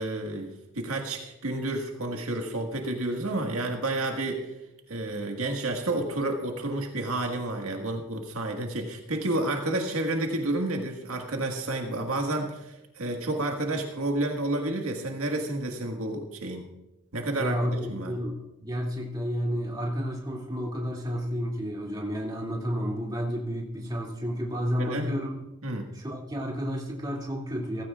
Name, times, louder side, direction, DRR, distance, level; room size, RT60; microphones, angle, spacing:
voice 1, 0.0-4.5 4.9-16.7 17.1-18.1 24.8-25.1 25.6-25.9, right 2 dB, 85° right, 2 dB, 1.8 m, -30 dB
voice 2, 17.4-25.4 25.9-27.8, equal, 20° right, -2 dB, 2.5 m, -31 dB
17.0 x 15.5 x 2.4 m, 0.93 s
head